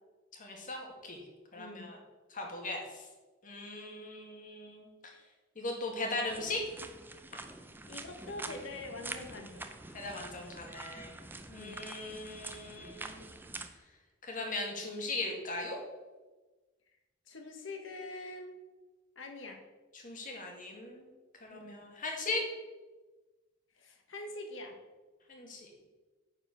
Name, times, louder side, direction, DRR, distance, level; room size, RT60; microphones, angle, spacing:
voice 1, 0.3-1.2 1.5-2.0 2.3-2.8 3.4-4.9 5.6-6.6 9.9-11.1 11.5-13.3 14.2-15.8 20.0-21.1 21.4-22.4 25.3-25.7, left 2 dB, 40° left, 1 dB, 2.0 m, -38 dB
voice 2, 1.5-1.9 7.9-9.7 11.5-11.9 17.3-18.6 19.1-19.6 21.5-21.9 23.7-24.8, left 2 dB, 70° left, 3 dB, 1.5 m, -44 dB
sound 1, 6.3-13.7, right 2 dB, 10° right, 0.6 m, -46 dB
9.6 x 4.9 x 6.3 m, 1.2 s
head